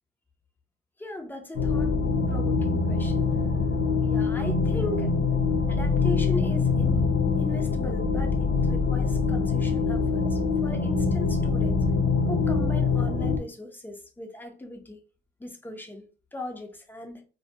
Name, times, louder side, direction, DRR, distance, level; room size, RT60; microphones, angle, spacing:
voice 1, 1.0-2.0 2.3-3.3 4.0-5.1 5.7-7.1 7.4-11.8 12.3-15.0 15.4-16.1 16.3-17.2, left 2 dB, 10° left, 0.7 m, -38 dB
sound 1, 1.5-13.4, left 4 dB, 85° left, 0.5 m, -24 dB
2.3 x 2.2 x 2.8 m
cardioid pair, 90°, 20 cm